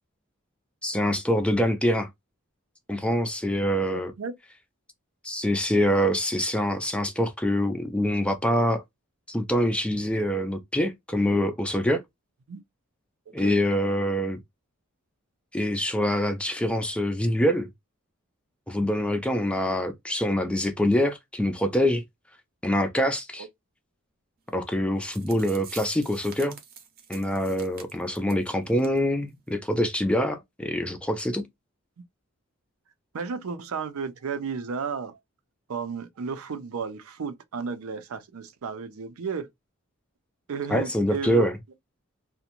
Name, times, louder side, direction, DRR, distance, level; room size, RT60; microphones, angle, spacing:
voice 1, 0.8-2.1 2.9-4.1 5.2-8.8 9.3-12.0 13.3-14.4 15.5-17.7 18.7-22.0 22.6-23.5 24.5-26.6 27.1-31.5 40.7-41.5, equal, 5° left, 0.3 m, -25 dB
voice 2, 3.9-4.3 12.5-12.6 13.4-13.6 23.4-23.5 32.0-32.1 33.1-35.2 35.7-39.5 40.5-41.5, right 5 dB, 90° right, 0.5 m, -33 dB
sound 1, 24.7-24.8 25.0-28.4 28.8-29.0 29.3-29.4 29.9-30.0, right 7 dB, 45° right, 0.7 m, -46 dB
2.5 x 2.1 x 2.8 m
head